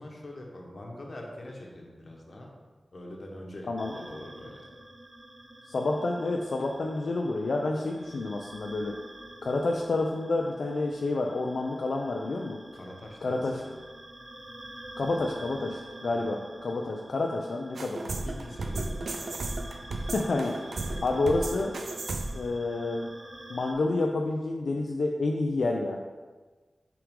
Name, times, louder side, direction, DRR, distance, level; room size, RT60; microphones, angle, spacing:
voice 1, 0.0-2.5 2.9-4.7 12.7-13.8 16.1-16.3 18.2-19.4 20.9-21.0, left 1 dB, 45° left, -1 dB, 1.1 m, -44 dB
sound 1, 3.8-23.7, right 1 dB, 20° right, 0.7 m, -47 dB
voice 2, 5.7-8.9 9.4-12.6 13.2-13.6 15.0-18.1 20.1-20.5 21.0-21.7 22.3-23.1 23.5-26.0, left 2 dB, 70° left, 1 dB, 0.4 m, -29 dB
sound 2, 17.8-22.5, right 2 dB, 70° right, 0.5 m, -34 dB
5.9 x 4.9 x 3.7 m, 1.4 s
wide cardioid pair, 120°, 0 cm